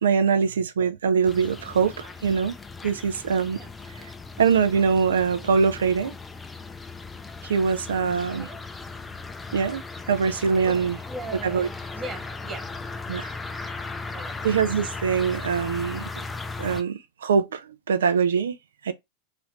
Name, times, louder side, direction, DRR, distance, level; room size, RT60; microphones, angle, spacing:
voice 1, 0.0-2.6 2.8-3.6 4.4-6.1 7.4-8.5 9.5-9.8 10.1-11.0 11.4-11.7 13.1-13.3 14.4-16.1 16.6-18.6 18.8-18.9, right 6 dB, 75° right, 0.5 m, -23 dB
sound 1, 1.2-16.8, left 3 dB, 15° left, 0.5 m, -37 dB
voice 2, 7.9-8.6 10.6-12.7 13.4-14.5, right 2 dB, 25° right, 1.4 m, -41 dB
3.2 x 2.5 x 3.1 m
hypercardioid pair, 90°, 0 cm